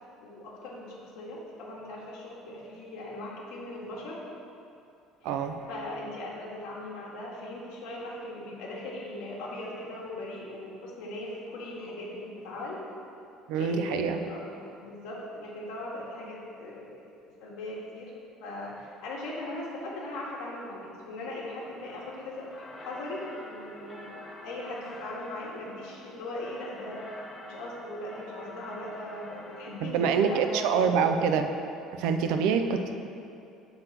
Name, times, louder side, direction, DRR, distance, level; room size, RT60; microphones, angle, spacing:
voice 1, 0.2-4.2 5.2-5.3 5.7-12.8 13.6-17.1 17.4-18.1 18.4-24.2 24.4-27.1 27.4-31.0 32.2-32.6, left 1 dB, 80° left, -4 dB, 1.4 m, -39 dB
voice 2, 5.2-5.6 13.5-14.2 29.8-31.5 31.9-33.0, right 6 dB, 75° right, 7 dB, 0.5 m, -26 dB
sound 1, 21.6-29.9, left 2 dB, 15° left, 0.7 m, -47 dB
6.7 x 4.0 x 5.8 m, 2.6 s
cardioid pair, 160°, 0 cm